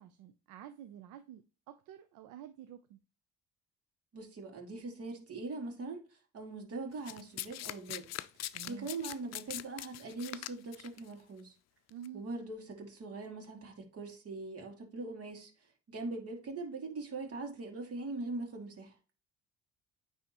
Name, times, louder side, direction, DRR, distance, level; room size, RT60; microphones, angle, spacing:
voice 1, 0.0-3.0 8.5-8.9 11.9-12.2, right 11 dB, 80° right, 0.7 m, -49 dB
voice 2, 4.1-8.1 8.7-11.5 12.1-15.5 15.9-18.9, right 3 dB, 50° right, 2.5 m, -42 dB
Domestic sounds home sounds, 7.1-11.0 11.9-12.1, left 15 dB, 60° left, 0.5 m, -41 dB
9.4 x 3.6 x 3.0 m
supercardioid pair, 80°, 30 cm